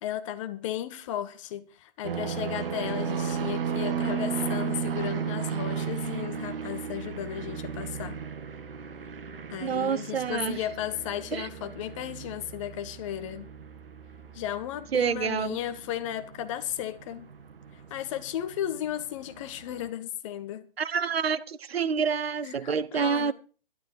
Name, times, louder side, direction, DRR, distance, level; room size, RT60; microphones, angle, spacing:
voice 1, 0.0-8.2 9.5-13.5 14.3-17.2 17.7-20.7 22.4-23.3, left 11 dB, 30° left, 1.4 m, -35 dB
sound 1, 2.0-19.1 19.3-19.8, right 6 dB, 70° right, 1.8 m, -35 dB
voice 2, 9.6-10.6 11.3-11.5 14.9-15.6 20.8-23.3, right 6 dB, 85° right, 1.0 m, -28 dB
12.0 x 12.0 x 4.8 m
hypercardioid pair, 150°, 30 cm